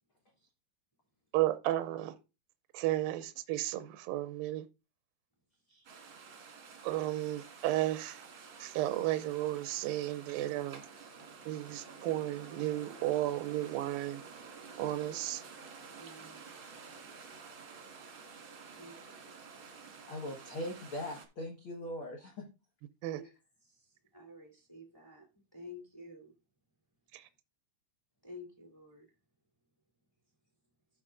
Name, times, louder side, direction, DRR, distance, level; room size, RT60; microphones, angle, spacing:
voice 1, 1.3-2.1 2.7-4.7 6.8-8.3 8.6-10.8 11.5-14.2 14.8-15.4 23.0-23.2 27.1-27.3, right 15 dB, 80° right, 2.2 m, -33 dB
sound 1, 5.8-21.2, right 5 dB, 50° right, 1.6 m, -51 dB
voice 2, 16.0-16.4 18.7-19.8 23.1-23.3 23.6-25.3 25.5-26.3 28.2-29.1, left 2 dB, 10° left, 1.8 m, -51 dB
voice 3, 20.1-22.5, left 1 dB, 70° left, 1.2 m, -40 dB
15.0 x 5.3 x 2.5 m
omnidirectional pair, 4.5 m